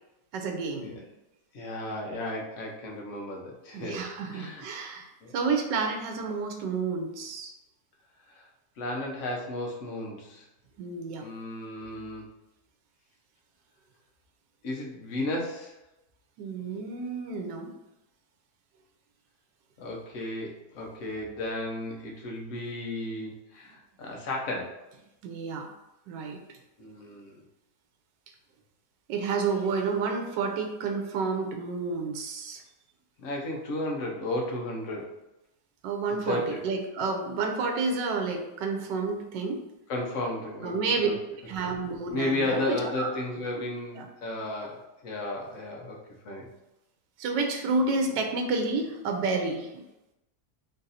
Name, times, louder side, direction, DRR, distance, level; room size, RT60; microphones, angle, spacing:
voice 1, 0.3-1.1 3.7-7.5 10.8-11.3 16.4-17.7 25.2-25.7 26.1-26.4 29.1-32.6 35.8-39.6 40.6-41.1 41.5-43.1 44.0-44.1 47.2-49.8, right 4 dB, 85° right, 3 dB, 1.3 m, -30 dB
voice 2, 1.5-4.7 5.2-5.3 8.3-8.5 8.8-10.5 11.2-12.3 14.6-15.7 19.8-24.8 26.8-27.4 33.2-35.1 36.3-36.6 39.9-41.1 41.6-46.0 46.2-46.5, left 2 dB, 55° left, -1 dB, 1.0 m, -34 dB
3.9 x 2.6 x 4.0 m, 0.94 s
omnidirectional pair, 1.8 m